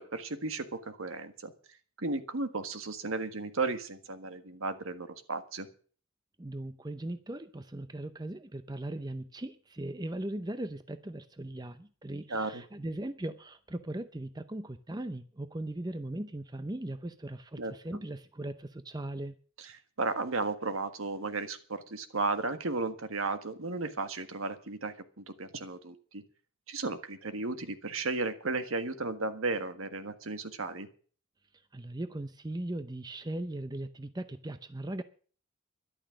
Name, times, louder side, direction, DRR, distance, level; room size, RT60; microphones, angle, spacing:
voice 1, 0.0-1.5 2.0-5.7 12.3-12.6 17.6-17.7 19.6-19.7 20.0-26.2 26.7-30.9, right 3 dB, 70° right, 9 dB, 1.5 m, -34 dB
voice 2, 6.4-19.3 31.7-35.0, right 1 dB, 20° right, 11 dB, 0.6 m, -39 dB
12.5 x 11.5 x 6.4 m, 0.43 s
head